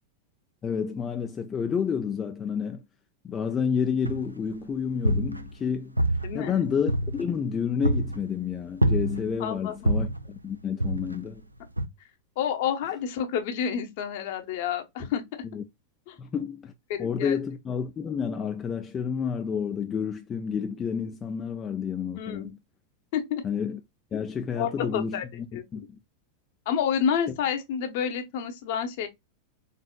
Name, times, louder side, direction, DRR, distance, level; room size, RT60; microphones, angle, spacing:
voice 1, 0.6-2.8 3.2-6.0 6.3-11.4 15.5-15.6 16.2-16.7 17.0-22.6 23.4-23.8 24.1-25.8, left 7 dB, 25° left, 0.4 m, -30 dB
sound 1, 4.1-4.5 4.9-5.7 6.0-7.4 7.8-8.3 8.8-9.4 9.8-10.3 10.8-11.3 11.8-11.9, right 1 dB, 85° right, 0.4 m, -26 dB
voice 2, 6.2-6.6 9.4-10.0 12.4-15.2 16.1-16.2 16.9-17.4 22.2-22.5 23.1-23.4 24.6-25.2 25.5-25.9 26.7-29.1, left 8 dB, 50° left, 0.9 m, -29 dB
4.0 x 3.5 x 2.2 m
figure-of-eight pair, 90°, 0 cm